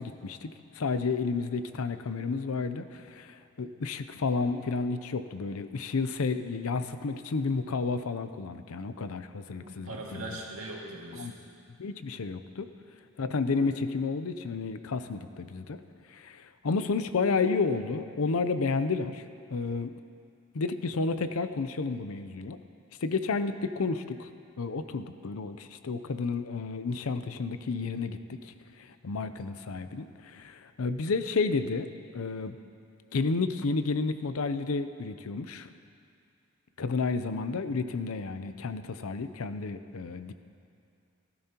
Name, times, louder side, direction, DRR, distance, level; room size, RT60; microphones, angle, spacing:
voice 1, 0.0-10.4 11.1-11.3 11.8-12.7 13.2-15.8 16.1-19.2 19.5-19.9 20.5-22.6 23.0-24.3 24.6-31.9 32.1-32.6 33.1-35.7 36.8-40.3, left 4 dB, 90° left, 10 dB, 0.6 m, -31 dB
voice 2, 9.6-11.4, right 2 dB, 85° right, -3 dB, 2.1 m, -40 dB
18.0 x 12.5 x 2.9 m, 2.4 s
head